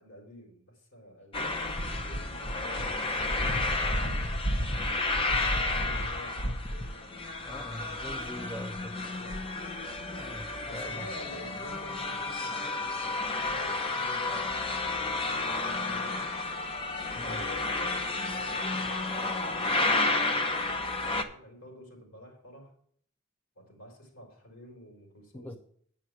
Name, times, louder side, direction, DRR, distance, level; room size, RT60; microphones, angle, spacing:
voice 1, 0.0-3.8 5.4-7.9 8.9-9.4 10.7-16.4 17.1-22.7 23.5-25.6, equal, 75° left, 0 dB, 4.2 m, -50 dB
sound 1, 1.3-21.2, left 2 dB, 25° left, 0.8 m, -31 dB
voice 2, 7.4-9.0 10.2-11.1 17.2-17.4 25.3-25.6, left 1 dB, 10° left, 6 dB, 0.4 m, -42 dB
9.7 x 5.8 x 6.3 m, 0.62 s
head